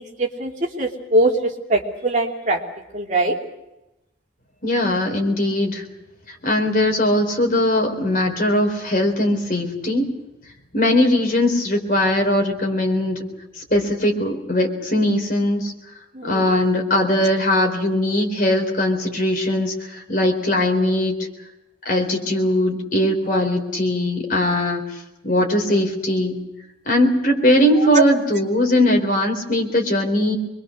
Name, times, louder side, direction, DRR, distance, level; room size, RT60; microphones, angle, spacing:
voice 1, 0.0-2.6 2.9-3.3 16.1-16.5 27.9-28.0, right 2 dB, 40° right, 0 dB, 3.1 m, -21 dB
voice 2, 4.6-5.8 6.3-10.1 10.7-13.2 13.7-15.7 16.2-21.2 21.9-25.0 25.2-26.4 26.9-30.3, left 1 dB, 45° left, 2 dB, 4.0 m, -20 dB
26.0 x 22.5 x 6.6 m, 0.92 s
head